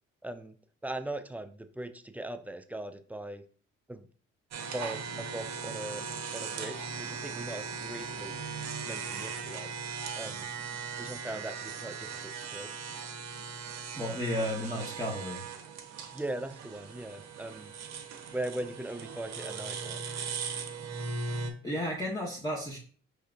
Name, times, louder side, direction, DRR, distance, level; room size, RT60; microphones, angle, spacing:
voice 1, 0.2-0.5 0.8-3.4 3.9-4.1 4.7-6.0 6.3-8.4 8.8-9.7 10.2-10.5 11.0-12.7 16.1-17.7 18.3-20.0, right 1 dB, 5° right, 9 dB, 0.3 m, -39 dB
sound 1, 4.5-21.5, right 5 dB, 55° right, 0.7 m, -39 dB
voice 2, 14.0-15.4 21.6-22.8, equal, 10° left, -4 dB, 1.1 m, -33 dB
4.8 x 3.2 x 2.4 m, 0.43 s
supercardioid pair, 65°, 32 cm